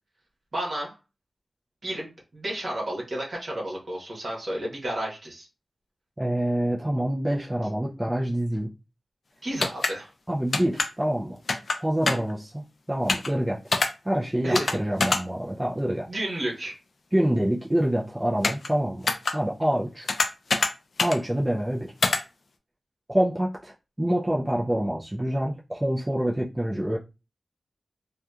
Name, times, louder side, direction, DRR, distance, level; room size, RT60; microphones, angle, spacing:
voice 1, 0.5-1.0 1.8-5.5 9.4-10.1 14.4-14.8 16.1-16.8, right 1 dB, 50° right, -2 dB, 1.1 m, -31 dB
voice 2, 6.2-8.7 10.3-11.4 11.8-13.6 14.0-16.1 17.1-20.1 21.0-21.9 23.1-27.0, right 1 dB, 15° right, -4 dB, 0.4 m, -26 dB
sound 1, 9.6-9.9 10.5-10.9 11.5-11.8 12.0-12.3 13.1-13.3 13.7-13.9 14.5-14.7 15.0-15.2 18.4-18.7 19.1-19.3 20.1-20.7 21.0-21.2 22.0-22.2, left 3 dB, 60° left, 0.3 m, -24 dB
2.8 x 2.3 x 2.3 m, 0.29 s
wide cardioid pair, 110°, 0 cm